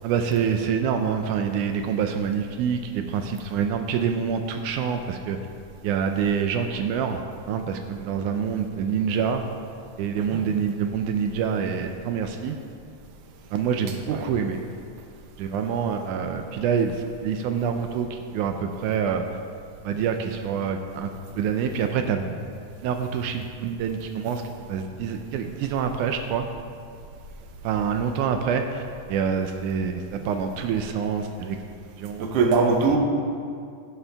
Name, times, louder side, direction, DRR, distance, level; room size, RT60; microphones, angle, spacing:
voice 1, 0.0-5.4 5.8-9.4 10.0-12.6 13.5-14.6 15.4-19.2 19.8-21.1 21.4-22.4 22.8-24.4 24.7-26.5 27.6-28.8 29.1-31.6 32.0-32.2, right 7 dB, 80° right, 6 dB, 2.0 m, -26 dB
voice 2, 32.2-33.0, right 4 dB, 65° right, 3 dB, 1.6 m, -21 dB
16.0 x 7.1 x 3.4 m, 2.3 s
omnidirectional pair, 3.6 m